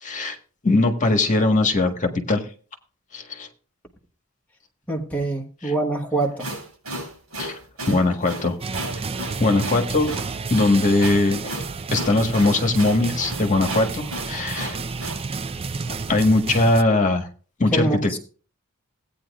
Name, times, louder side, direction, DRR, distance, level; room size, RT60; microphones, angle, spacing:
voice 1, 0.0-0.4 0.6-2.4 3.1-3.5 5.6-5.7 7.4-7.6 7.8-8.6 9.4-10.1 10.5-11.4 11.9-14.8 16.1-17.3 17.6-17.9, left 2 dB, 35° left, 1.6 m, -20 dB
voice 2, 4.9-6.5 17.7-18.2, right 2 dB, 5° left, 1.3 m, -25 dB
sound 1, 6.2-15.2, right 1 dB, 75° right, 6.7 m, -34 dB
sound 2, 8.6-16.8, right 4 dB, 25° right, 0.4 m, -31 dB
16.5 x 9.1 x 2.5 m
head